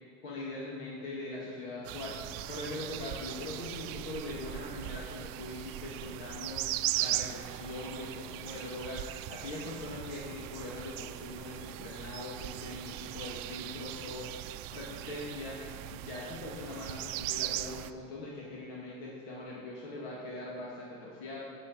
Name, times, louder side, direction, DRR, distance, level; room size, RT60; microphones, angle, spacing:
voice 1, 0.2-2.2 2.5-14.4 14.7-15.6 15.9-21.4, left 2 dB, 85° left, -4 dB, 2.1 m, -41 dB
sound 1, 1.8-17.9, right 15 dB, 65° right, 0.5 m, -39 dB
8.4 x 6.2 x 7.5 m, 2.6 s
supercardioid pair, 100°, 35 cm